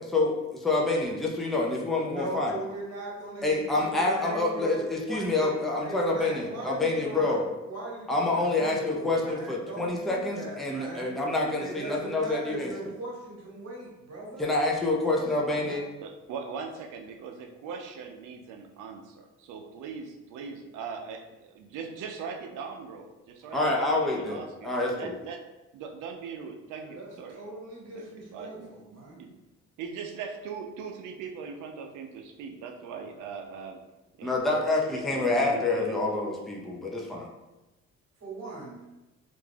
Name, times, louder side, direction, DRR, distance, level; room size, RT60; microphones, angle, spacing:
voice 1, 0.0-2.5 3.4-7.4 8.1-12.9 14.4-15.8 23.5-25.2 34.2-37.3, left 2 dB, ahead, -3 dB, 0.5 m, -27 dB
voice 2, 2.1-11.1 11.6-14.5 15.2-15.8 26.8-29.2 38.2-38.8, right 2 dB, 55° right, -3 dB, 1.1 m, -40 dB
voice 3, 16.0-25.4 25.7-27.4 27.9-28.7 29.2-29.4 29.8-33.8 34.2-34.4 34.9-36.0, right 5 dB, 85° right, 4 dB, 0.5 m, -40 dB
2.5 x 2.2 x 3.3 m, 1.0 s
cardioid pair, 90°, 30 cm